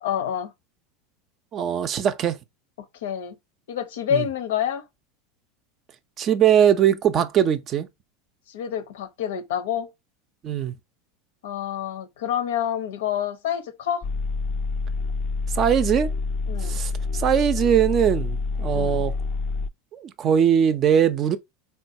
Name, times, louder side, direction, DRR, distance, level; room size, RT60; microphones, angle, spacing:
voice 1, 0.0-0.5 3.0-3.4 3.7-4.8 8.5-9.9 11.4-14.1 16.5-16.8 18.7-19.0, left 9 dB, 80° left, 0.6 m, -28 dB
voice 2, 1.5-2.4 4.1-4.2 6.2-7.9 10.4-10.7 15.5-16.1 16.6-19.1 19.9-21.4, right 9 dB, 40° right, 0.4 m, -21 dB
sound 1, 14.0-19.7, left 4 dB, 40° left, 0.3 m, -27 dB
3.7 x 2.3 x 2.6 m
hypercardioid pair, 100°, 0 cm